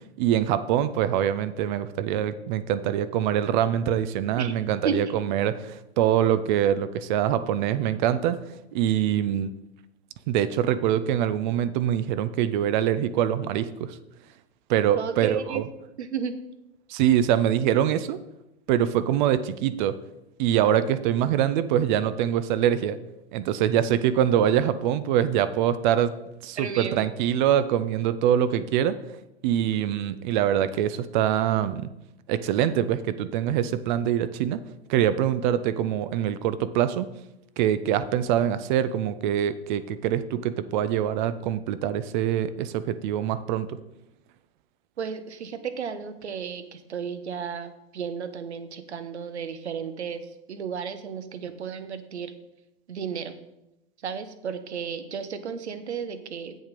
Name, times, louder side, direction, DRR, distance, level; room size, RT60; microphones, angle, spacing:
voice 1, 0.2-8.4 8.7-9.5 10.3-14.0 14.7-15.6 16.9-18.2 18.7-20.0 20.4-23.0 23.3-26.1 26.4-29.0 29.4-31.9 32.3-34.6 34.9-37.1 37.6-43.8, right 10 dB, 45° right, 13 dB, 0.7 m, -24 dB
voice 2, 14.9-15.6 16.0-16.3 26.6-27.0 45.0-52.3 52.9-53.4 54.0-56.6, right 6 dB, 80° right, 10 dB, 1.1 m, -33 dB
8.0 x 7.3 x 5.2 m, 0.89 s
hypercardioid pair, 110°, 33 cm